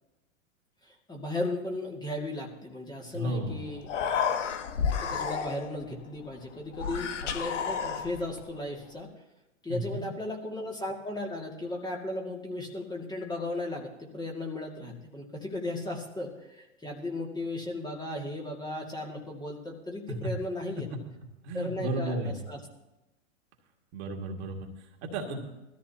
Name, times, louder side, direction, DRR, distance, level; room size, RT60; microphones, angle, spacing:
voice 1, 0.8-3.9 5.0-9.1 9.6-20.9 21.5-22.6, left 1 dB, 10° left, -1 dB, 2.2 m, -36 dB
voice 2, 3.1-3.6 9.7-10.1 21.4-22.3 23.9-24.7 25.0-25.4, right 1 dB, 55° right, 1 dB, 2.3 m, -33 dB
Human voice, 3.4-3.5 3.8-5.8 6.7-8.4, left 7 dB, 70° left, 1.3 m, -31 dB
19.5 x 13.5 x 2.9 m, 1.0 s
hypercardioid pair, 110°, 38 cm